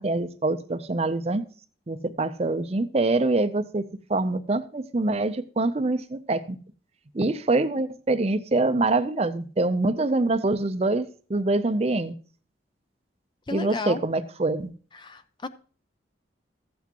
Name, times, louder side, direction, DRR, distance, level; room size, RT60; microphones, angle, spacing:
voice 1, 0.0-1.4 1.9-3.8 4.1-6.6 7.1-12.1 13.5-14.7, right 2 dB, 35° right, 0.5 m, -25 dB
voice 2, 13.5-14.0 14.9-15.5, left 3 dB, 25° left, 0.5 m, -33 dB
14.0 x 8.2 x 2.9 m
head